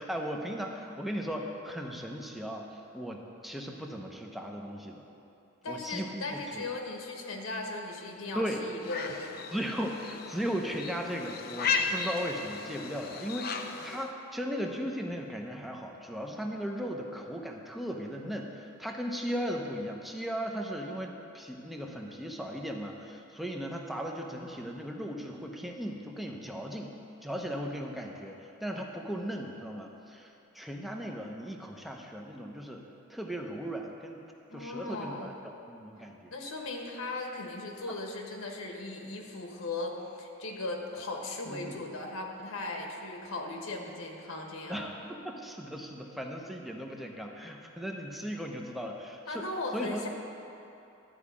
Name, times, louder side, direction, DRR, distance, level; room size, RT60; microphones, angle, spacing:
voice 1, 0.0-2.7 2.9-5.0 5.7-6.7 8.3-8.6 9.5-26.9 27.2-30.3 30.5-32.8 33.1-34.2 34.5-36.3 41.4-41.8 44.7-49.4 49.7-50.0, equal, ahead, 1 dB, 0.8 m, -37 dB
voice 2, 5.6-9.5 34.5-35.3 36.3-44.9 49.3-50.1, left 2 dB, 75° left, 1 dB, 1.3 m, -38 dB
sound 1, 8.8-14.1, left 5 dB, 45° left, 0.6 m, -35 dB
12.5 x 5.0 x 8.4 m, 2.8 s
head